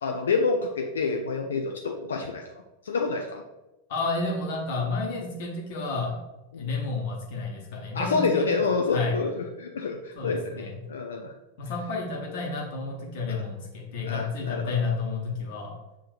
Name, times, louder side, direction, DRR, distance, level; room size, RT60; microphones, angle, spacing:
voice 1, 0.0-2.4 2.8-3.4 6.5-6.7 7.9-11.3 13.3-13.4 14.1-14.8, left 4 dB, 65° left, 2 dB, 0.4 m, -28 dB
voice 2, 3.9-6.2 6.6-8.5 8.9-9.2 10.1-10.8 11.6-15.8, left 3 dB, 50° left, -2 dB, 1.0 m, -31 dB
6.3 x 3.2 x 2.5 m, 1.0 s
figure-of-eight pair, 90°, 0 cm